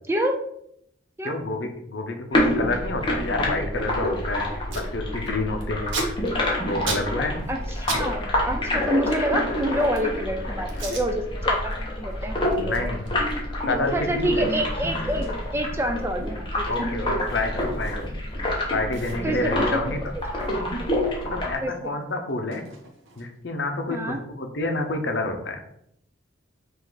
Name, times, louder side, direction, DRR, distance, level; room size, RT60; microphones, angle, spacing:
voice 1, 1.2-4.5 4.7-6.0 6.7-7.4 10.9-11.0 12.6-13.2 13.7-14.5 16.7-18.2 18.7-20.0 21.2-22.6 23.2-25.6, left 2 dB, 65° left, 5 dB, 0.7 m, -28 dB
sound 1, 2.3-21.5, left 1 dB, 25° left, 0.9 m, -27 dB
Packing tape duct tape, 4.6-4.9 5.2-8.1 8.3-10.2 10.7-11.1 11.5-11.8 12.1-18.3 18.6-18.7 18.9-21.3 21.6-23.5, right 3 dB, 90° right, 1.0 m, -38 dB
voice 2, 7.5-13.0 13.9-16.9 19.2-19.9 21.6-21.9 23.9-24.2, right 1 dB, 15° right, 4 dB, 0.3 m, -27 dB
5.2 x 2.5 x 3.9 m, 0.73 s
head